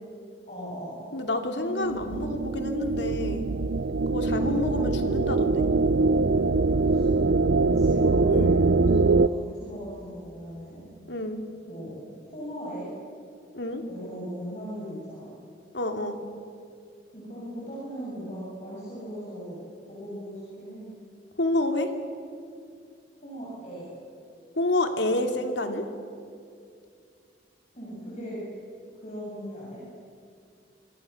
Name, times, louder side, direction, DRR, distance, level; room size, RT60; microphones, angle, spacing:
voice 1, 0.5-1.1 4.3-4.5 6.8-7.0 7.6-10.9 11.7-12.0 12.3-12.9 13.9-15.3 17.1-19.6 19.9-20.9 23.2-23.9 27.7-28.4 29.0-29.8, equal, 40° left, -7 dB, 7.8 m, -38 dB
voice 2, 1.1-3.5 4.1-5.6 8.3-8.5 11.1-11.4 13.5-13.8 15.7-16.2 21.4-21.9 24.6-25.9, left 1 dB, 75° left, 5 dB, 2.7 m, -28 dB
sound 1, 1.7-9.3, right 3 dB, 65° right, 0.6 m, -23 dB
26.5 x 25.0 x 7.1 m, 2.4 s
head